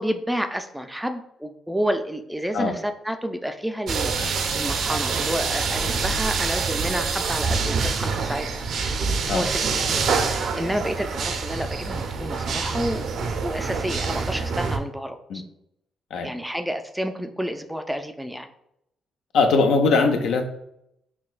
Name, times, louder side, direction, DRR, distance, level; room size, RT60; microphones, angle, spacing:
voice 1, 0.0-8.7 9.3-15.4 16.2-18.5, equal, 5° right, 7 dB, 0.3 m, -30 dB
sound 1, 3.9-14.8, right 5 dB, 65° right, 0.5 m, -26 dB
voice 2, 19.3-20.4, left 4 dB, 75° left, 5 dB, 0.5 m, -21 dB
5.8 x 2.2 x 2.4 m, 0.77 s
cardioid pair, 90°, 0 cm